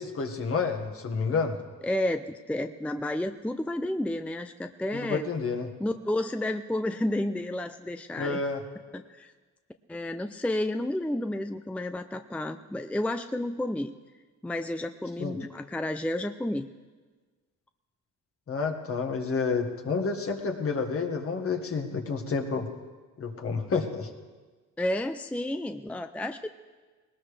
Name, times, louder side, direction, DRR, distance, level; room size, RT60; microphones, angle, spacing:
voice 1, 0.0-1.6 4.9-5.7 8.2-8.6 15.2-15.3 18.5-22.7 23.2-24.1, left 4 dB, 50° left, 4 dB, 1.8 m, -29 dB
voice 2, 1.8-5.3 5.8-8.4 8.9-9.3 9.9-13.9 14.4-16.7 24.8-26.5, left 1 dB, 5° left, 9 dB, 0.5 m, -31 dB
20.0 x 19.0 x 3.4 m, 1.4 s
cardioid pair, 90°, 30 cm